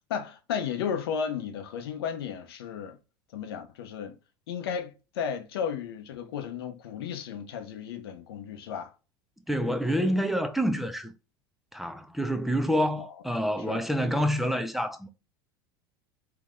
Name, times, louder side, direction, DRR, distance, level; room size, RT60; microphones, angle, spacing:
voice 1, 0.1-3.0 3.3-4.2 4.5-8.9 13.0-13.1 13.7-13.8, left 7 dB, 85° left, 0.7 m, -34 dB
voice 2, 9.5-11.1 11.7-15.1, equal, ahead, 0.4 m, -27 dB
3.6 x 2.8 x 2.4 m
supercardioid pair, 105°, 12 cm